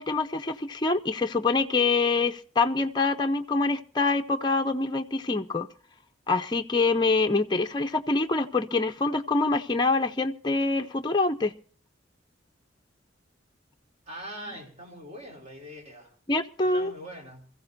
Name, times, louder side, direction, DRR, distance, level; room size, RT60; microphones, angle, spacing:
voice 1, 0.0-5.7 6.3-11.5 16.3-16.9, left 3 dB, 20° left, 0.6 m, -25 dB
voice 2, 14.1-16.1 16.6-17.5, equal, 35° right, 4.8 m, -42 dB
27.0 x 15.5 x 2.7 m
head